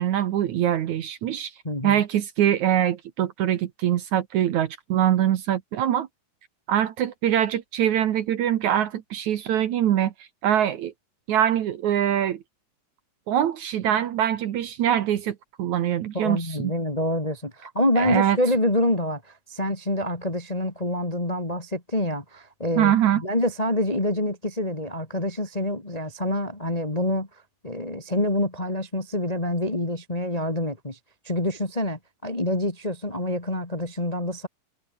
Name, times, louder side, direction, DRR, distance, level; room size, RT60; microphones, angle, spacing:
voice 1, 0.0-1.5 1.8-6.1 6.7-10.9 11.3-12.4 13.3-16.7 18.0-18.4 22.8-23.2, right 10 dB, 65° right, 2.2 m, -23 dB
voice 2, 1.6-2.0 16.1-27.3 27.6-31.0 31.2-34.5, left 1 dB, 15° left, 1.9 m, -26 dB
omnidirectional pair, 4.2 m